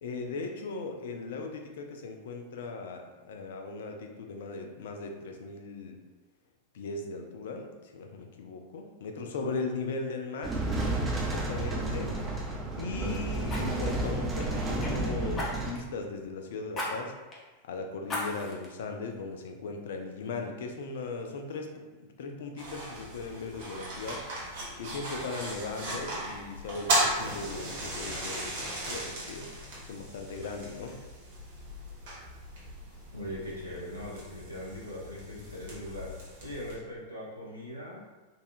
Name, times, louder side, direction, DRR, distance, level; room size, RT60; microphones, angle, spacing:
voice 1, 0.0-6.0 6.7-10.6 11.3-12.1 12.8-17.1 17.6-21.7 22.2-24.2 24.8-29.5 29.8-31.0, left 4 dB, 60° left, 3 dB, 0.4 m, -38 dB
sound 1, 10.4-15.7, right 2 dB, 20° right, 0.6 m, -31 dB
Fire, 11.3-11.5 13.5-14.9 15.3-15.9 16.7-16.9 17.3-17.4 18.0-18.7 19.2-19.3, left 1 dB, 25° left, 0.8 m, -37 dB
sound 2, 22.6-36.7, right 1 dB, 55° right, 1.2 m, -36 dB
voice 2, 33.1-36.1 36.4-38.0, equal, 90° right, -6 dB, 0.9 m, -40 dB
4.0 x 2.4 x 2.6 m, 1.2 s
figure-of-eight pair, 90°, 0 cm